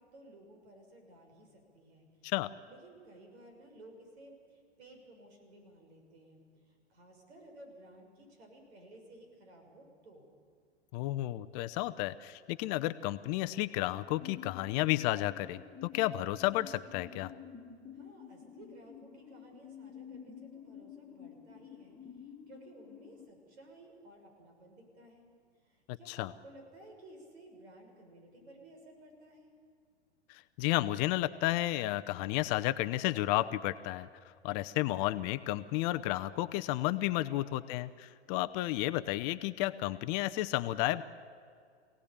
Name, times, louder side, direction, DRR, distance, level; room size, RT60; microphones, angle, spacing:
voice 1, 0.0-2.3 2.7-10.3 17.9-25.3 25.6-29.5, right 1 dB, 70° right, 3 dB, 6.7 m, -56 dB
voice 2, 10.9-17.3 25.9-26.3 30.3-34.1 34.4-41.0, left 16 dB, 35° left, 12 dB, 0.7 m, -32 dB
sound 1, 13.8-23.3, left 8 dB, 15° left, 2.0 m, -51 dB
25.0 x 17.5 x 8.8 m, 2.2 s
hypercardioid pair, 115°, 34 cm